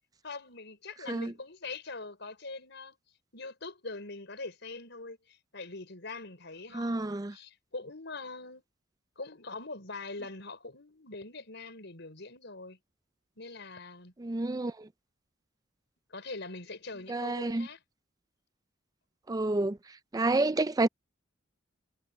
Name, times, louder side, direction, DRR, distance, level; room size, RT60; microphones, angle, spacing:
voice 1, 0.2-2.9 3.3-8.6 9.2-12.8 13.4-14.1 16.1-17.8, left 3 dB, 65° left, 6.0 m, -43 dB
voice 2, 6.7-7.3 14.2-14.9 17.1-17.7 19.3-19.8 20.1-20.9, right 2 dB, 20° right, 0.4 m, -29 dB
head